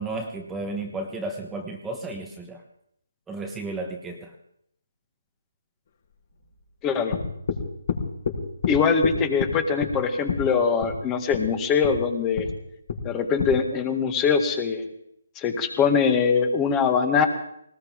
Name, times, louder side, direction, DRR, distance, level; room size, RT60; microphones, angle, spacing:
voice 1, 0.0-2.6 3.3-4.3, right 2 dB, 10° right, 2 dB, 1.3 m, -33 dB
voice 2, 6.8-7.2 8.7-12.5 13.0-14.9 15.3-17.3, left 6 dB, 20° left, 7 dB, 1.8 m, -22 dB
sound 1, 7.1-7.6 7.9-8.4 8.6-8.8 9.0-9.5 9.8-10.0 10.3-10.4 10.8-10.9 11.3-11.4 11.8-11.9 12.4-12.5 12.9-13.0 13.4-13.5, left 6 dB, 55° left, 4.9 m, -27 dB
19.5 x 19.5 x 3.8 m, 0.73 s
figure-of-eight pair, 150°, 0 cm